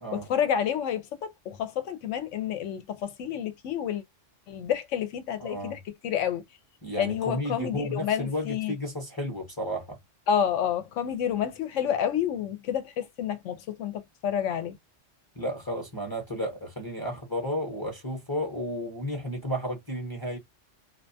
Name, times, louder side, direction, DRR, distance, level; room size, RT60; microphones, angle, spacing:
voice 1, 0.1-4.0 4.5-6.4 7.0-8.7 10.3-14.7, left 9 dB, 80° left, 0.9 m, -29 dB
voice 2, 5.4-5.8 6.8-10.0 15.4-20.4, equal, 20° left, 0.7 m, -33 dB
2.4 x 2.2 x 2.6 m
omnidirectional pair, 1.3 m